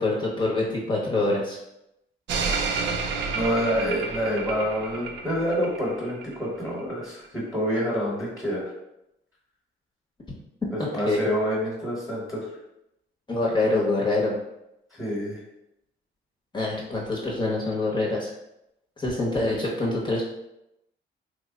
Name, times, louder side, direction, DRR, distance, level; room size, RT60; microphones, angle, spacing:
voice 1, 0.0-1.6 11.1-11.3 13.3-14.4 16.5-18.3 19.0-20.3, left 2 dB, 25° left, -4 dB, 0.8 m, -25 dB
sound 1, 2.3-6.4 6.8-6.9, right 4 dB, 65° right, 0.5 m, -30 dB
voice 2, 3.3-8.7 10.7-12.5 15.0-15.4, equal, ahead, -6 dB, 1.1 m, -27 dB
3.1 x 2.1 x 3.8 m, 0.84 s
cardioid pair, 90°, 20 cm